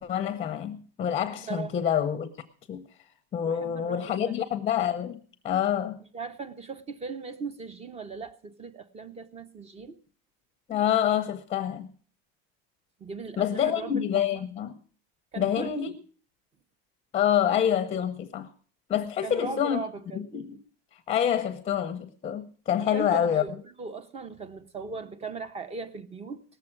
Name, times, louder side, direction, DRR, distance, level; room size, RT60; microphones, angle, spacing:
voice 1, 0.0-2.3 2.7-2.8 3.3-6.0 10.7-11.9 13.4-14.7 15.4-15.9 17.1-18.5 18.9-19.8 20.1-20.6 21.1-23.4, left 9 dB, 20° left, 0.7 m, -27 dB
voice 2, 1.4-1.8 3.5-4.4 6.1-10.0 13.0-13.9 15.3-16.0 19.2-20.2 22.8-26.4, right 4 dB, 20° right, 0.8 m, -38 dB
18.5 x 7.6 x 6.0 m
cardioid pair, 145°, 31 cm